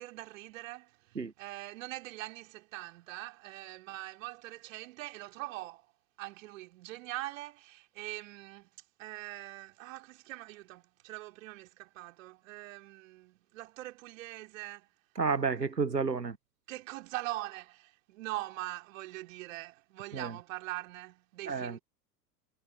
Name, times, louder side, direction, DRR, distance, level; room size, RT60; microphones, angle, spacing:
voice 1, 0.0-5.9 6.2-14.9 16.7-21.8, right 17 dB, 55° right, 4.3 m, -43 dB
voice 2, 15.2-16.3 20.2-20.3 21.5-21.8, right 5 dB, 90° right, 1.1 m, -30 dB
figure-of-eight pair, 90°, 47 cm